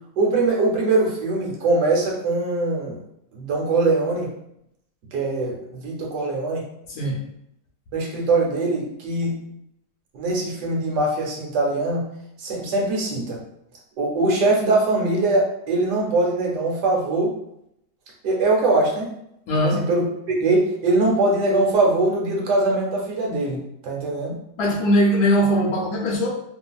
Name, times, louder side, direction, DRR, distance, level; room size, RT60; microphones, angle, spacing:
voice 1, 0.2-3.0 3.3-4.3 5.1-6.6 7.9-9.4 10.1-12.1 12.4-13.4 14.0-17.3 18.2-19.1 19.6-24.4, right 2 dB, 75° right, -1 dB, 1.3 m, -22 dB
voice 2, 6.9-7.2 19.5-19.8 24.6-26.3, equal, 70° left, -2 dB, 1.1 m, -20 dB
2.8 x 2.5 x 2.3 m, 0.77 s
omnidirectional pair, 1.8 m